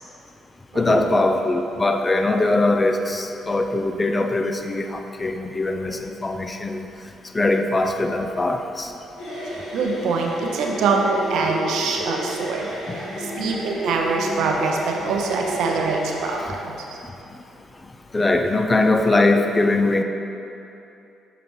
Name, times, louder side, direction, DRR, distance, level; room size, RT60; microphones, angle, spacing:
voice 1, 0.7-6.9 7.3-8.9 12.9-13.5 14.1-14.5 15.0-15.2 18.1-20.0, left 2 dB, 25° left, 5 dB, 0.5 m, -21 dB
sound 1, 9.2-16.4, right 1 dB, 85° left, 1.5 m, -32 dB
voice 2, 9.5-16.8, right 4 dB, 70° right, 1 dB, 0.6 m, -24 dB
6.7 x 5.0 x 3.1 m, 2.8 s
hypercardioid pair, 50°, 0 cm